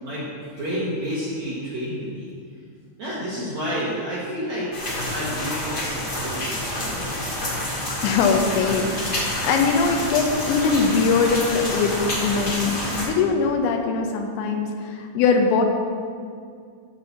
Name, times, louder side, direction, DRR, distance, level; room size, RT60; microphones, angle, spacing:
voice 1, 0.0-2.3 3.0-7.1, equal, 75° right, -8 dB, 1.6 m, -30 dB
sound 1, 4.7-13.0, left 1 dB, 45° left, 1.3 m, -28 dB
voice 2, 8.0-15.6, left 5 dB, 80° left, 3 dB, 2.9 m, -22 dB
10.5 x 4.1 x 6.9 m, 2.1 s
omnidirectional pair, 5.4 m